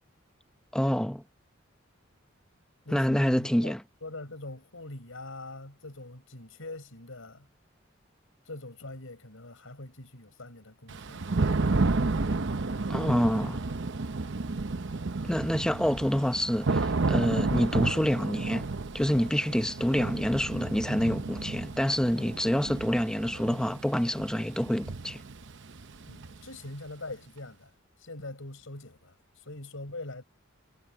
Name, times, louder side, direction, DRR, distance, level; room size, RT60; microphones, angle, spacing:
voice 1, 0.7-1.2 2.9-3.8 12.9-13.6 15.3-18.7 18.9-25.2, equal, 5° left, 0.7 m, -27 dB
voice 2, 2.9-3.7 4.0-7.5 8.5-11.3 26.1-27.7 28.0-29.1 29.4-30.2, left 2 dB, 85° left, 5.2 m, -43 dB
Thunder / Rain, 10.9-26.7, right 3 dB, 65° right, 0.9 m, -31 dB
head